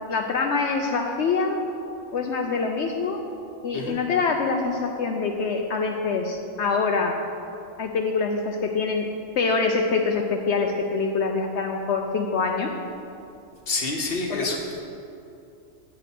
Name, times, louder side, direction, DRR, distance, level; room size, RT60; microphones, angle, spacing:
voice 1, 0.1-1.6 2.1-3.2 3.6-7.2 7.8-9.1 9.4-12.7 14.3-14.5, left 4 dB, 65° left, 3 dB, 0.8 m, -25 dB
voice 2, 13.7-14.8, left 3 dB, 50° left, 1 dB, 1.2 m, -28 dB
8.8 x 8.2 x 4.2 m, 2.7 s
omnidirectional pair, 1.4 m